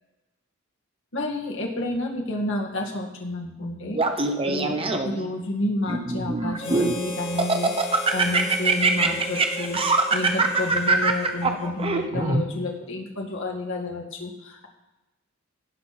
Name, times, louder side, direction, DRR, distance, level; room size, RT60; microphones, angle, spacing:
voice 1, 1.1-4.0 4.5-14.7, left 2 dB, 65° left, 0 dB, 2.1 m, -30 dB
Laughter, 3.9-5.3 5.9-6.9 7.4-12.4, right 3 dB, 25° right, 0.9 m, -23 dB
Harmonica, 6.6-12.1, equal, 30° left, 1.9 m, -36 dB
17.5 x 6.0 x 4.4 m, 1.0 s
head